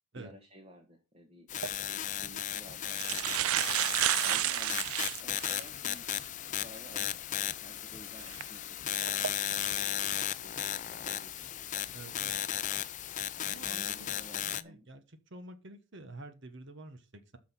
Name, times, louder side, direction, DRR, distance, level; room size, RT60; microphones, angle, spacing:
voice 1, 0.1-4.9 5.2-6.2 6.6-11.9 13.4-14.9, equal, 30° right, 1.5 m, -54 dB
sound 1, 1.5-14.6, left 11 dB, 35° left, 0.4 m, -35 dB
sound 2, 1.5-1.7 2.5-2.6 2.9-5.7 6.3-6.4 8.2-8.4 9.0-9.3, right 13 dB, 85° right, 0.5 m, -31 dB
voice 2, 11.9-12.3 13.4-15.0 15.3-17.4, right 2 dB, 55° right, 1.2 m, -48 dB
6.4 x 6.1 x 7.2 m
head